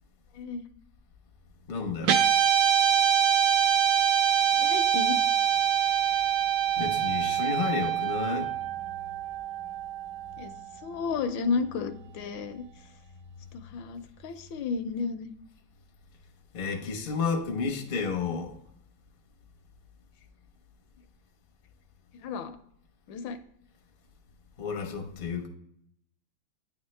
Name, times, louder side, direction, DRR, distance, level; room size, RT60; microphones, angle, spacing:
voice 1, 1.7-2.2 6.8-8.5 16.5-18.6 24.6-25.5, left 5 dB, 50° left, 3 dB, 0.6 m, -31 dB
Guitar, 2.0-10.5, right 9 dB, 75° right, 1.0 m, -25 dB
voice 2, 4.5-5.2 10.4-10.5 10.8-12.7 13.5-15.3 22.2-22.6 23.1-23.4, left 5 dB, 75° left, 9 dB, 1.2 m, -32 dB
9.0 x 3.6 x 3.2 m, 0.72 s
omnidirectional pair, 2.2 m